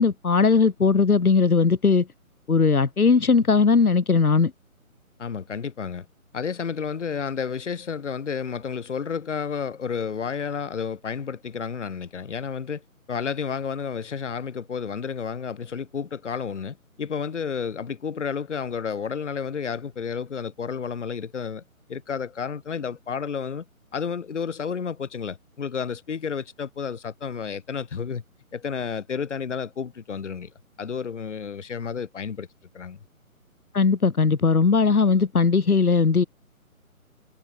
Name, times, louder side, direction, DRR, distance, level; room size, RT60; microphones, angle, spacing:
voice 1, 0.0-2.1 2.5-4.5 33.7-36.2, left 4 dB, 85° left, 1.1 m, -19 dB
voice 2, 5.2-6.1 6.3-12.8 13.1-21.6 21.9-23.6 23.9-28.2 28.5-30.5 30.8-32.5 32.7-33.0, left 6 dB, 55° left, 1.1 m, -31 dB
figure-of-eight pair, 145°, 43 cm